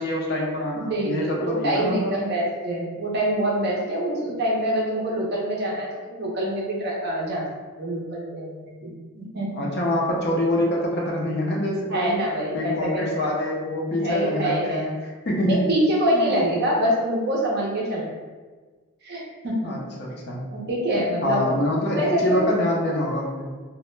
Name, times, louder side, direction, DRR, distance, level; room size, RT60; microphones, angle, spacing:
voice 1, 0.0-2.1 9.5-12.2 12.5-14.9 15.3-15.6 16.1-16.3 19.6-20.5 21.2-23.5, left 1 dB, 45° left, -2 dB, 0.4 m, -25 dB
voice 2, 0.7-7.5 7.8-9.8 11.9-13.1 14.0-14.8 15.5-18.1 19.0-19.7 20.5-21.4 22.0-22.4, right 1 dB, 45° right, -3 dB, 0.5 m, -25 dB
2.1 x 2.0 x 3.0 m, 1.4 s
head